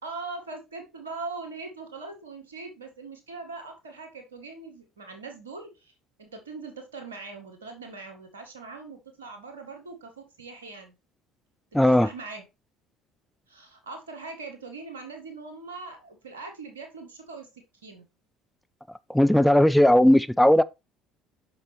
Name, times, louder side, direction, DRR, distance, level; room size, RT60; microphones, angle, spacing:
voice 1, 0.0-5.9 6.2-10.9 11.8-12.4 13.5-17.5 17.8-18.1, right 3 dB, 85° right, 1.9 m, -41 dB
voice 2, 11.7-12.1 19.1-20.6, left 1 dB, 5° left, 0.5 m, -17 dB
6.5 x 6.0 x 3.0 m
hypercardioid pair, 60°, 0 cm